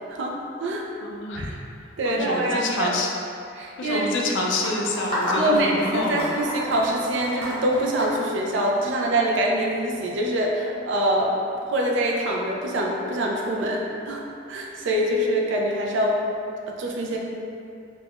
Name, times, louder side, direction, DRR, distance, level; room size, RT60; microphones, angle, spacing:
voice 1, 0.1-0.8 1.4-1.5 2.0-2.9 3.6-4.1 5.4-11.4 11.7-16.2 16.7-17.2, right 1 dB, 70° right, -1 dB, 0.4 m, -24 dB
voice 2, 1.0-1.6 2.0-3.1 3.8-6.3, left 2 dB, 65° left, 0 dB, 0.4 m, -27 dB
sound 1, 4.6-9.0, left 1 dB, 30° left, 0.7 m, -29 dB
3.4 x 2.2 x 2.4 m, 2.6 s
head